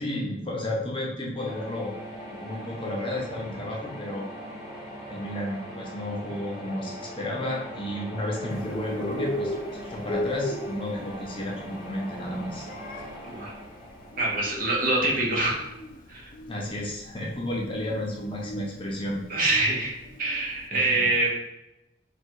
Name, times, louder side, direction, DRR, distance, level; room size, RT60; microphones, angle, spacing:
voice 1, 0.0-1.9 2.3-4.3 5.1-12.7 16.5-19.2 20.8-20.9, left 1 dB, 30° left, -2 dB, 0.7 m, -32 dB
sound 1, 1.4-15.2, equal, ahead, 1.4 m, -41 dB
Bird, 8.5-20.6, left 1 dB, 50° left, 0.4 m, -37 dB
voice 2, 14.2-15.7 16.1-16.3 19.3-19.9 20.2-21.3, right 2 dB, 50° right, -2 dB, 1.0 m, -25 dB
3.6 x 2.4 x 4.5 m, 0.91 s
head